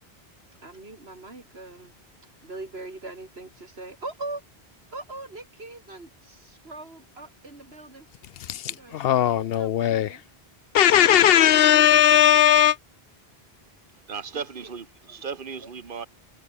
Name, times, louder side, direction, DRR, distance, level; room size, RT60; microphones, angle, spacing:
voice 1, 0.6-1.9 2.4-4.4 4.9-8.1 8.6-10.2 14.3-14.7 15.1-15.2, right 2 dB, 80° right, 4.0 m, -41 dB
voice 2, 8.4-10.2 10.7-12.8, left 11 dB, 75° left, 0.8 m, -18 dB
voice 3, 14.1-16.1, right 6 dB, 55° right, 1.6 m, -36 dB
omnidirectional pair, 1.0 m